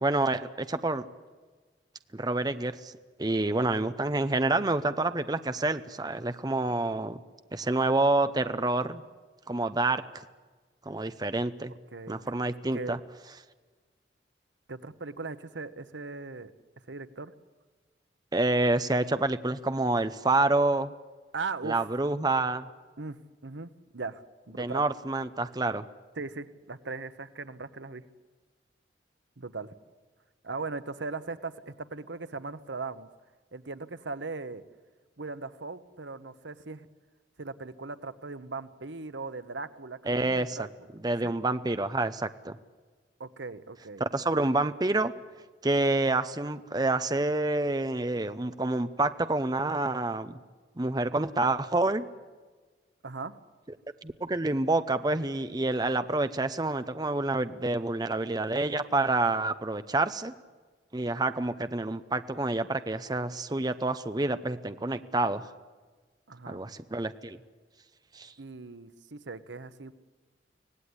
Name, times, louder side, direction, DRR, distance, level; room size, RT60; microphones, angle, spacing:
voice 1, 0.0-1.0 2.1-2.9 3.2-7.2 7.5-9.0 9.5-10.2 10.9-11.7 12.1-13.0 18.3-20.9 21.6-22.7 24.6-25.9 40.1-40.7 41.0-42.6 44.1-45.1 45.6-50.4 50.8-52.1 54.0-60.3 60.9-65.5 66.5-67.4 68.1-68.3, right 2 dB, 20° right, 11 dB, 0.7 m, -28 dB
voice 2, 14.7-16.5 16.9-17.3 21.3-21.9 23.0-23.2 23.4-24.8 26.2-28.0 29.4-29.7 30.4-33.1 33.5-34.6 35.2-36.9 37.4-40.7 41.2-41.3 43.2-44.1 53.0-53.4 66.3-66.7 68.4-69.9, right 4 dB, 90° right, 13 dB, 1.1 m, -39 dB
25.0 x 17.5 x 9.8 m, 1.4 s
head